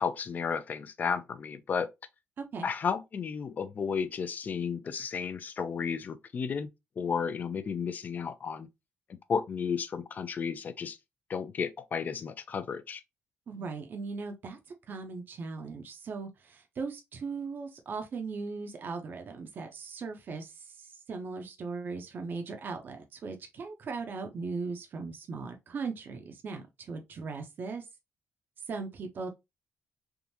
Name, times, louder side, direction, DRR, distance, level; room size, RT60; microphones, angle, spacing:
voice 1, 0.0-1.9 2.6-6.7 7.0-8.7 9.1-11.0 11.3-13.0, left 6 dB, 40° left, 0.4 m, -33 dB
voice 2, 13.5-14.6 14.9-27.9 28.7-29.3, right 4 dB, 50° right, 0.7 m, -38 dB
3.5 x 2.5 x 2.7 m
cardioid pair, 120°, 4 cm